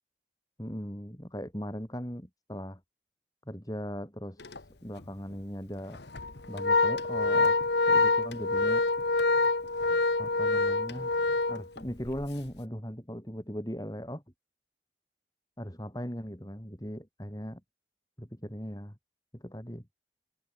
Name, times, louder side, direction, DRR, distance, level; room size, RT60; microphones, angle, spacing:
voice 1, 0.6-2.8 3.5-6.0 6.5-7.6 7.9-8.9 10.2-11.1 11.5-14.2 15.6-17.6 18.2-19.0 19.3-19.9, equal, 20° left, 5.5 m, -39 dB
Organ, 4.4-4.6 5.0-5.1 5.9-12.2, left 3 dB, 75° left, 1.6 m, -26 dB
head